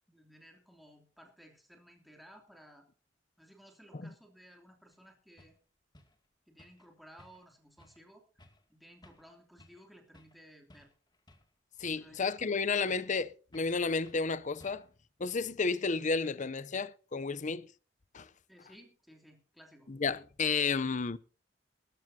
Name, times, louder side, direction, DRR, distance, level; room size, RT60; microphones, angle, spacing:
voice 1, 0.1-2.9 3.4-5.5 6.5-8.4 8.7-10.9 12.0-12.2 12.5-12.6 18.5-19.9, equal, ahead, 2.9 m, -57 dB
sound 1, 4.9-5.0 5.4-5.6 5.9-6.2 6.6-6.9 7.2-7.5 7.8-8.0 8.4-8.6 9.0-9.3 9.6-9.9 10.1-10.4 10.7-11.5 11.8-12.6 12.9-13.2 13.5-13.8 14.0-14.3 14.6-15.0, left 1 dB, 25° left, 2.4 m, -60 dB
voice 2, 11.8-14.9 15.2-17.7 18.1-18.3 19.9-21.2, left 4 dB, 40° left, 0.7 m, -32 dB
20.0 x 13.5 x 2.8 m
head